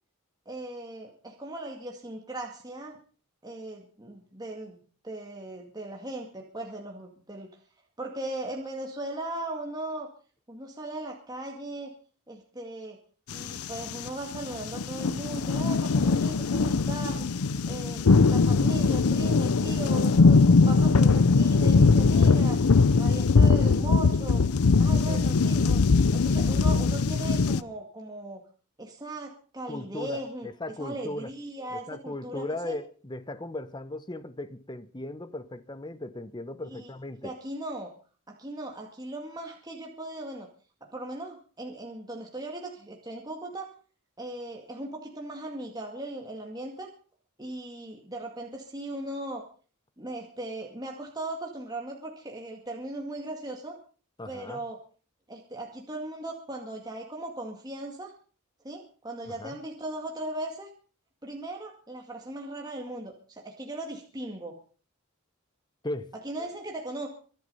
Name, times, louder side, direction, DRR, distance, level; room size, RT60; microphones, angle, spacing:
voice 1, 0.5-3.0 3.4-4.8 5.0-7.5 8.0-10.1 10.5-11.9 12.3-13.0 13.3-17.3 17.7-22.6 23.0-24.4 24.8-25.8 26.1-28.4 28.8-30.5 30.8-32.8 36.7-36.9 37.2-37.9 38.3-40.5 40.9-43.7 44.2-46.9 47.4-49.4 50.0-53.8 54.3-54.8 55.3-58.1 58.6-60.7 61.2-64.6 66.2-67.1, right 1 dB, 20° right, 2.1 m, -38 dB
sound 1, 13.3-27.6, left 4 dB, 85° left, 0.6 m, -21 dB
voice 2, 24.9-25.3 29.7-31.3 31.7-37.3 54.2-54.6 59.4-59.6 65.8-66.1, left 2 dB, 20° left, 0.9 m, -37 dB
24.5 x 8.2 x 5.5 m
head